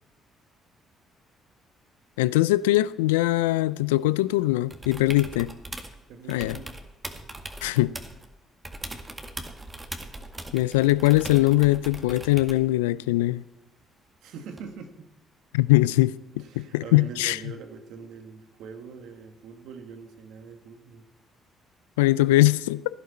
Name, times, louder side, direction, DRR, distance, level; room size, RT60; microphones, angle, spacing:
voice 1, 2.2-5.5 6.3-6.6 7.6-7.9 10.5-13.4 15.5-17.4 22.0-22.8, left 17 dB, 90° left, 0.3 m, -21 dB
sound 1, 4.7-6.0 6.3-8.3 8.6-12.7 14.6-14.7, right 2 dB, 20° right, 2.0 m, -40 dB
voice 2, 6.1-6.7 14.2-15.1 16.4-21.1, right 5 dB, 75° right, 1.8 m, -43 dB
16.5 x 11.0 x 4.3 m
hypercardioid pair, 55°, 0 cm